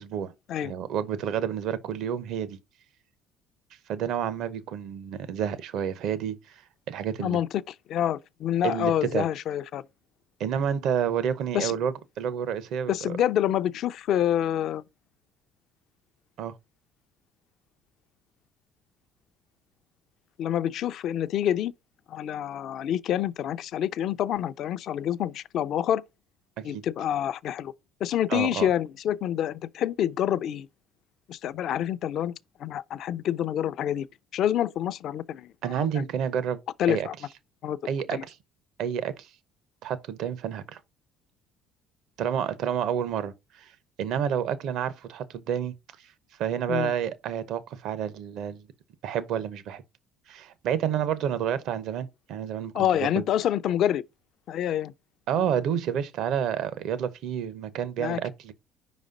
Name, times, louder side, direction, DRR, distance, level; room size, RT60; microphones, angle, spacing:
voice 1, 0.0-0.3 0.6-2.6 3.9-6.5 6.9-7.4 8.6-9.3 10.4-12.9 16.4-16.5 26.6-26.8 28.3-28.7 35.6-36.6 36.9-37.1 37.8-38.4 38.8-39.3 39.8-40.8 42.2-43.7 44.0-45.7 46.4-48.6 49.0-49.8 50.3-52.9 53.2-53.3 55.3-58.5, right 8 dB, 65° right, 0.7 m, -29 dB
voice 2, 7.9-9.8 11.5-11.7 12.9-14.8 20.4-21.7 22.1-26.0 26.6-27.7 28.0-30.7 31.3-32.3 32.6-34.1 34.3-35.9 36.8-37.1 37.6-37.8 38.1-38.2 46.7-46.9 52.7-54.0 54.5-54.9 58.0-58.2, left 10 dB, 60° left, 0.4 m, -27 dB
5.1 x 4.1 x 5.1 m
supercardioid pair, 90°, 0 cm